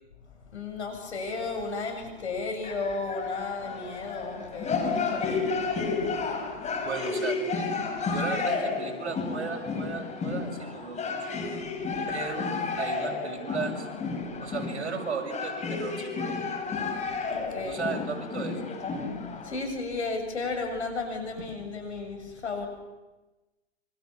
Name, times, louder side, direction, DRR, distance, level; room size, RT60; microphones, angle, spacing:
voice 1, 0.5-5.5 17.3-17.8 19.4-22.7, left 3 dB, 80° left, 6 dB, 7.3 m, -33 dB
sound 1, 2.6-19.5, left 4 dB, 20° left, 5.7 m, -32 dB
voice 2, 6.8-7.4 8.1-11.2 12.1-13.9 14.4-16.4 17.7-18.7, right 5 dB, 75° right, 2 dB, 7.0 m, -35 dB
27.0 x 25.0 x 7.4 m, 1.1 s
hypercardioid pair, 110°, 34 cm